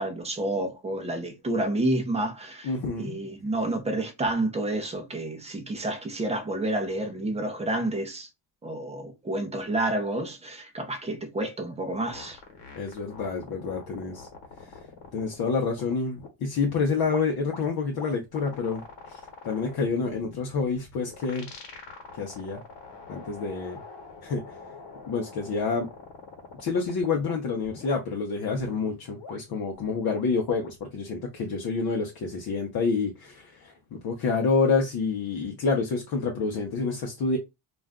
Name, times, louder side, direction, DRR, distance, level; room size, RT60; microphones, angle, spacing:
voice 1, 0.0-8.3 8.6-12.4, right 1 dB, 15° right, 0.5 m, -29 dB
voice 2, 2.6-3.2 12.7-14.3 15.1-21.5 22.2-22.6 23.1-23.8 24.2-24.5 25.1-25.9 26.6-37.4, left 4 dB, 55° left, 0.7 m, -28 dB
sound 1, 12.0-16.3 16.6-27.3 27.6-28.0 28.6-30.8, left 4 dB, 70° left, 1.1 m, -45 dB
2.5 x 2.2 x 3.4 m
cardioid pair, 140°, 43 cm